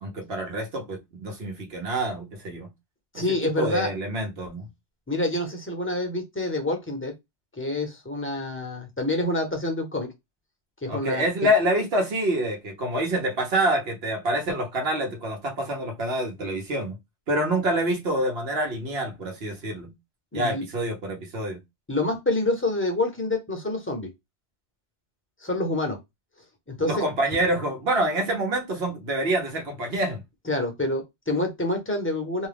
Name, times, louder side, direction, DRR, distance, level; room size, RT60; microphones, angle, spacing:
voice 1, 0.0-2.7 3.1-4.7 10.9-17.0 17.3-19.9 20.3-21.6 26.8-30.2, right 1 dB, 75° right, 1.2 m, -26 dB
voice 2, 3.1-3.9 5.1-7.1 7.5-10.1 10.8-11.5 20.3-20.6 21.9-24.1 25.4-26.0 26.7-27.0 30.4-32.5, left 2 dB, 15° left, 0.7 m, -27 dB
2.6 x 2.3 x 3.3 m
omnidirectional pair, 1.1 m